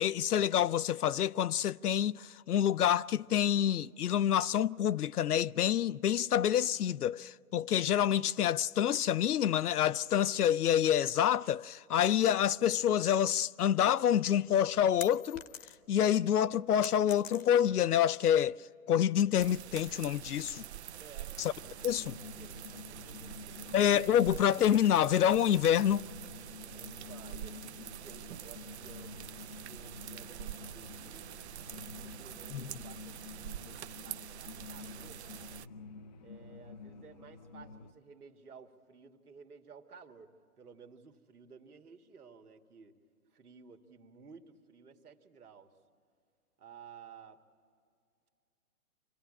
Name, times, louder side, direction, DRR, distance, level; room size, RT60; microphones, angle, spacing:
voice 1, 0.0-15.4 15.9-20.6 21.4-21.5 21.8-22.2 23.7-26.1 32.5-32.7, left 10 dB, 90° left, 0.6 m, -27 dB
sound 1, 14.2-16.0 16.4-17.8, left 8 dB, 60° left, 1.2 m, -45 dB
sound 2, 19.4-35.7, right 11 dB, 50° right, 0.5 m, -46 dB
voice 2, 21.0-21.4 21.6-23.9 26.7-31.3 31.9-35.6 36.2-43.0 43.3-45.7 46.6-47.4, right 5 dB, 85° right, 1.9 m, -55 dB
sound 3, 21.6-37.9, left 4 dB, 30° left, 0.6 m, -50 dB
26.0 x 16.5 x 9.8 m
hypercardioid pair, 140°, 44 cm